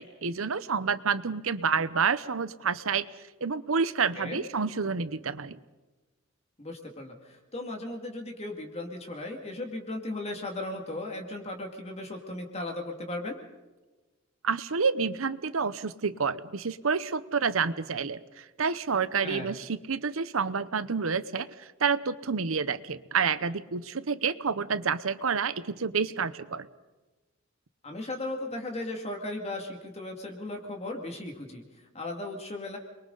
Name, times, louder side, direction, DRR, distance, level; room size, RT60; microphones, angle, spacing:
voice 1, 0.0-3.1 3.4-5.6 14.4-26.7, right 5 dB, 70° right, 15 dB, 0.8 m, -29 dB
voice 2, 6.6-13.5 19.2-19.6 27.8-32.8, left 2 dB, 30° left, 2 dB, 2.3 m, -37 dB
29.0 x 23.0 x 4.0 m, 1.2 s
head